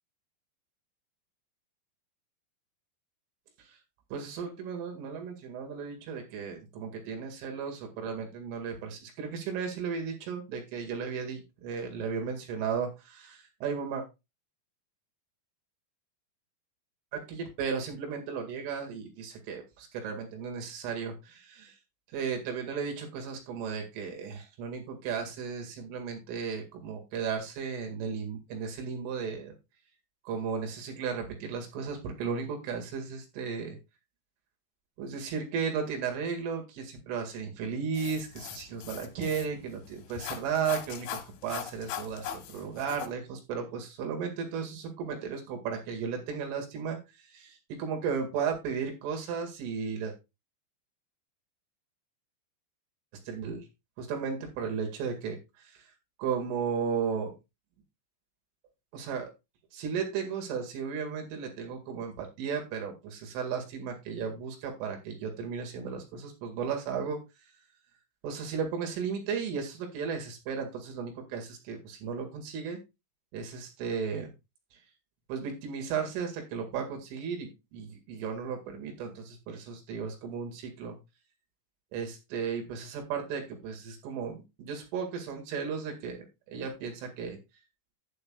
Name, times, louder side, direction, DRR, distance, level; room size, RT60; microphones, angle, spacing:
voice 1, 4.1-14.0 17.1-21.7 22.1-29.5 30.3-33.8 35.0-47.0 47.3-50.1 53.3-53.7 54.0-55.4 55.6-55.8 56.2-57.3 58.9-59.3 59.7-67.2 68.2-72.8 73.3-74.3 75.3-81.0 81.9-86.2 86.5-87.4, right 6 dB, 85° right, 3 dB, 4.5 m, -35 dB
sound 1, 37.9-43.1, left 9 dB, 85° left, 3.4 m, -41 dB
11.5 x 8.6 x 2.3 m, 0.24 s
omnidirectional pair, 5.5 m